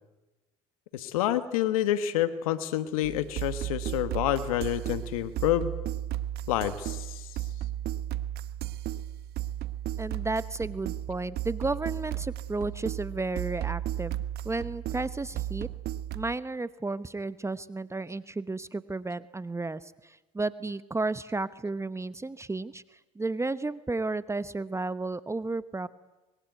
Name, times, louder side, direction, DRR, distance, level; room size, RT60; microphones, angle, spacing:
voice 1, 0.9-5.7 6.5-7.3, left 12 dB, 90° left, 13 dB, 1.3 m, -28 dB
sound 1, 3.0-16.3, right 12 dB, 65° right, 1.1 m, -34 dB
voice 2, 10.0-15.7 16.1-25.9, right 3 dB, 15° right, 15 dB, 1.0 m, -33 dB
25.0 x 22.5 x 9.3 m, 1.1 s
hypercardioid pair, 70°, 18 cm